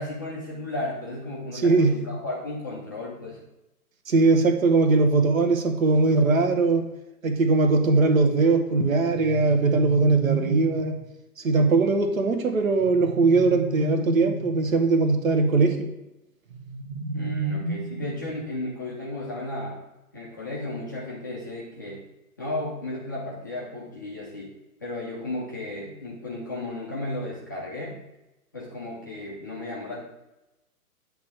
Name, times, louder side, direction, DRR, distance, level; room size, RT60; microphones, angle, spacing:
voice 1, 0.0-3.4 17.1-19.8 20.1-22.0 22.4-24.5 24.8-28.0 28.5-30.0, left 2 dB, 15° left, -5 dB, 0.4 m, -34 dB
voice 2, 1.6-1.9 4.1-6.8 7.2-11.0 11.4-15.9, right 3 dB, 60° right, 6 dB, 1.1 m, -20 dB
sound 1, 9.1-10.9 12.8-14.6 16.5-18.4, right 2 dB, 40° right, 1.2 m, -31 dB
8.2 x 3.2 x 4.9 m, 0.96 s
figure-of-eight pair, 120°, 46 cm